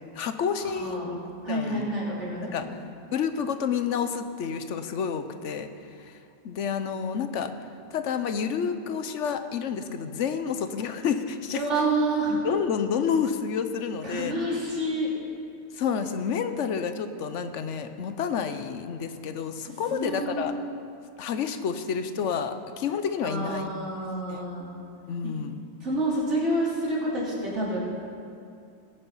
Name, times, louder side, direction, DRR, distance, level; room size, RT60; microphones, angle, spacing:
voice 1, 0.1-1.9 2.4-2.7 3.1-5.7 6.0-6.2 6.4-7.5 7.9-11.6 12.3-14.3 15.7-20.5 21.2-23.6 24.3-24.4 25.1-25.6, left 7 dB, 85° left, 9 dB, 1.1 m, -29 dB
voice 2, 0.8-1.1 1.4-2.7 11.5-12.4 14.0-15.1 19.9-20.5 23.2-24.7 25.8-27.8, right 1 dB, 80° right, -6 dB, 3.6 m, -28 dB
20.0 x 6.7 x 5.6 m, 2.5 s
omnidirectional pair, 1.2 m